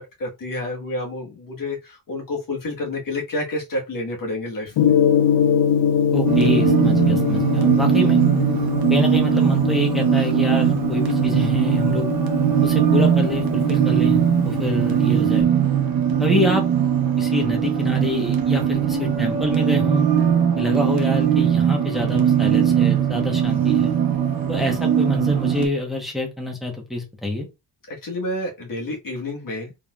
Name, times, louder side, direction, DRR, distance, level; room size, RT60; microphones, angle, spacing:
voice 1, 0.2-4.9 27.9-29.7, left 2 dB, 50° left, 1.6 m, -29 dB
Gong, 4.8-15.4, left 7 dB, 65° left, 0.7 m, -23 dB
voice 2, 6.1-8.2 8.9-12.1 12.6-15.5 16.2-16.6 17.2-20.0 20.6-23.9 24.5-27.5, left 1 dB, ahead, 1.2 m, -26 dB
sound 1, 6.3-25.7, right 9 dB, 55° right, 1.0 m, -20 dB
4.0 x 3.6 x 2.5 m
cardioid pair, 135°, 43 cm